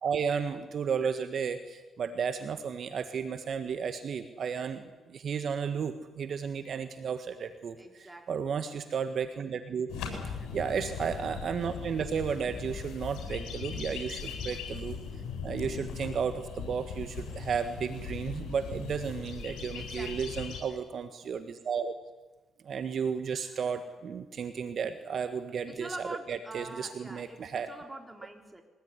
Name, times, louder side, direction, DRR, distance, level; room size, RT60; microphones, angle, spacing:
voice 1, 0.0-9.9 10.5-15.0 15.4-21.9 22.6-25.9 26.3-27.7, right 6 dB, 55° right, 9 dB, 1.7 m, -33 dB
voice 2, 7.8-8.4 10.0-10.5 13.7-13.8 19.7-20.4 20.7-20.8 23.7-23.8 25.7-28.6, right 1 dB, 10° right, 4 dB, 4.1 m, -45 dB
sound 1, 9.9-20.6, left 6 dB, 85° left, 7.8 m, -39 dB
23.5 x 19.5 x 9.9 m, 1.2 s
cardioid pair, 90°, 0 cm